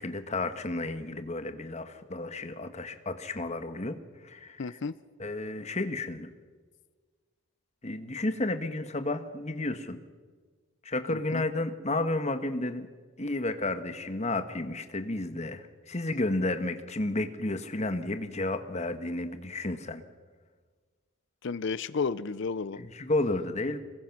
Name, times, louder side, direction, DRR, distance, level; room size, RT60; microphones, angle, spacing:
voice 1, 0.0-4.0 4.2-4.8 5.2-6.3 7.8-10.0 10.8-12.9 13.2-20.0 22.8-23.8, left 2 dB, 35° left, 9 dB, 1.4 m, -32 dB
voice 2, 4.6-4.9 11.1-11.4 21.4-22.8, left 4 dB, 60° left, 16 dB, 0.5 m, -32 dB
26.0 x 21.5 x 6.0 m, 1.5 s
head